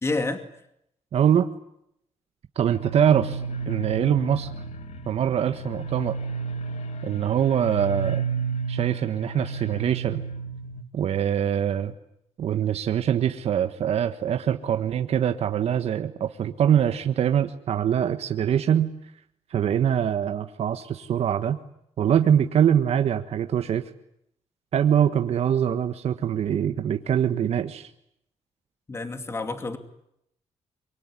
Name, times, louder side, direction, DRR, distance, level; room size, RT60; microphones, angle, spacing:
voice 1, 0.0-0.4 28.9-29.8, left 3 dB, 25° left, 8 dB, 2.6 m, -28 dB
voice 2, 1.1-1.5 2.5-3.4 3.7-4.5 5.1-6.2 7.0-8.2 8.7-10.2 10.9-11.9 12.4-18.9 19.5-21.6 22.0-23.8 24.7-27.9, right 9 dB, 65° right, 8 dB, 1.4 m, -23 dB
sound 1, 2.7-10.8, right 5 dB, 80° left, 2.3 m, -32 dB
25.0 x 24.0 x 9.8 m, 0.76 s
wide cardioid pair, 140°, 11 cm